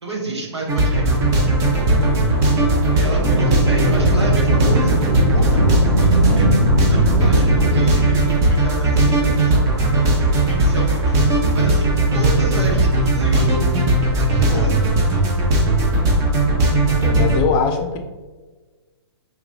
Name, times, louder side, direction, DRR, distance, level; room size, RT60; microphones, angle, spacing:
voice 1, 0.0-1.2 1.8-2.0 2.9-6.5 6.9-9.6 10.3-13.7 14.2-14.8 17.1-17.2, right 2 dB, 85° right, 0 dB, 1.0 m, -30 dB
sound 1, 0.7-17.4, right 2 dB, 25° right, 0.7 m, -17 dB
Thunder / Rain, 1.6-10.6 11.3-11.4 12.3-13.6 15.1-15.9, equal, 45° right, 1.0 m, -22 dB
voice 2, 1.9-2.4 14.4-14.7 17.0-18.0, left 5 dB, 30° left, 5 dB, 0.5 m, -22 dB
4.6 x 2.9 x 2.6 m, 1.3 s
hypercardioid pair, 130°, 14 cm